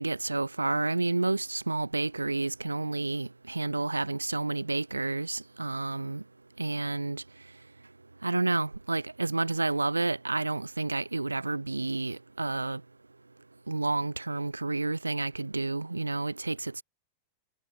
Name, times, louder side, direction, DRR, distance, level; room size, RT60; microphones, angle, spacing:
voice 1, 0.0-6.2 6.6-7.2 8.2-12.8 13.7-16.8, right 3 dB, 80° right, 6.9 m, -30 dB
figure-of-eight pair, 90°, 0 cm